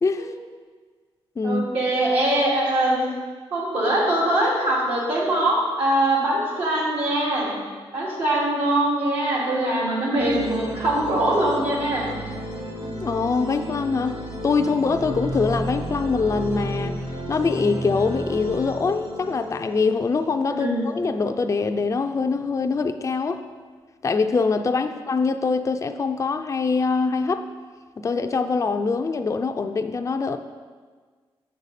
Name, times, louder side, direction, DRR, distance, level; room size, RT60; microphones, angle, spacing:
voice 1, 1.4-3.0 3.5-7.5 7.9-12.2 20.5-20.8, right 1 dB, 80° right, -6 dB, 2.4 m, -22 dB
sound 1, 10.2-21.6, equal, 50° right, 1.8 m, -33 dB
voice 2, 13.0-14.2 14.4-17.0 17.3-23.4 24.0-27.5 28.0-30.4, left 4 dB, 30° left, 7 dB, 0.4 m, -23 dB
6.9 x 6.5 x 4.1 m, 1.5 s
cardioid pair, 70°, 10 cm